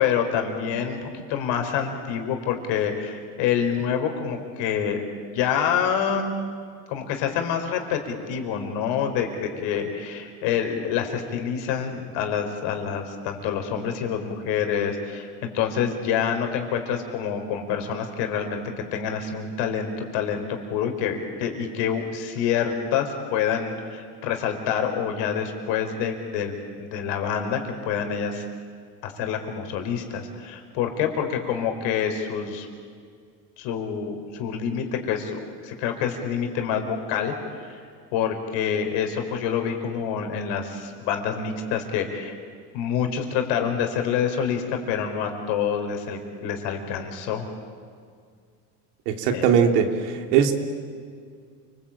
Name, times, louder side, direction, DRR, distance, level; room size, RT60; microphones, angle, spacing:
voice 1, 0.0-6.3 6.9-18.6 18.9-28.4 29.0-32.7 33.6-37.3 37.6-37.8 38.1-42.3 42.7-47.5 49.3-49.4, left 7 dB, 60° left, 5 dB, 4.9 m, -27 dB
voice 2, 49.1-50.5, right 7 dB, 75° right, 5 dB, 3.2 m, -20 dB
29.0 x 21.5 x 8.9 m, 2.1 s
supercardioid pair, 120°, 47 cm